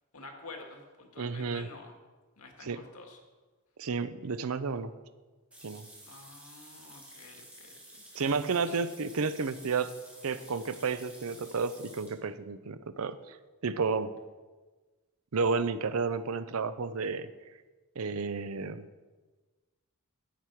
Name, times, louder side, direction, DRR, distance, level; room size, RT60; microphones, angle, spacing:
voice 1, 0.1-1.9 2.4-3.2 6.0-8.2 8.5-8.8, left 3 dB, 90° left, 3 dB, 1.8 m, -49 dB
voice 2, 1.2-1.7 2.6-2.8 3.8-4.9 5.6-5.9 8.1-9.9 10.2-13.4 13.6-14.2 15.3-17.3 18.0-18.9, right 4 dB, 70° right, 13 dB, 0.6 m, -31 dB
sound 1, 5.5-12.2, right 1 dB, 5° right, 2.0 m, -52 dB
10.0 x 8.6 x 4.7 m, 1.3 s
head